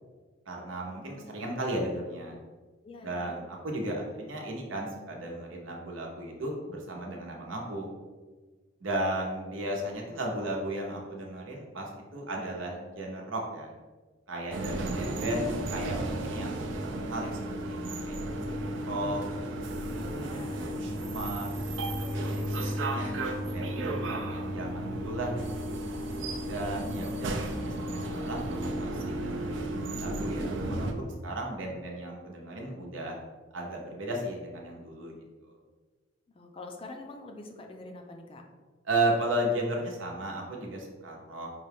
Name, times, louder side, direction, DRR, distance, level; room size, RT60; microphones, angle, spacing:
voice 1, 0.5-2.4 3.0-7.9 8.8-13.7 14.3-16.7 17.0-17.4 17.6-19.2 19.8-20.0 21.0-22.5 22.8-23.1 23.5-25.5 26.4-33.2 33.5-35.2 35.4-35.5 38.8-41.6, right 1 dB, 85° right, 0 dB, 0.9 m, -35 dB
voice 2, 1.0-1.5 2.8-3.4 15.4-15.7 20.0-20.7 36.3-38.5, left 2 dB, 30° left, 4 dB, 0.4 m, -45 dB
sound 1, 14.5-30.9, right 1 dB, 70° right, 0.5 m, -33 dB
5.3 x 2.3 x 3.4 m, 1.4 s
head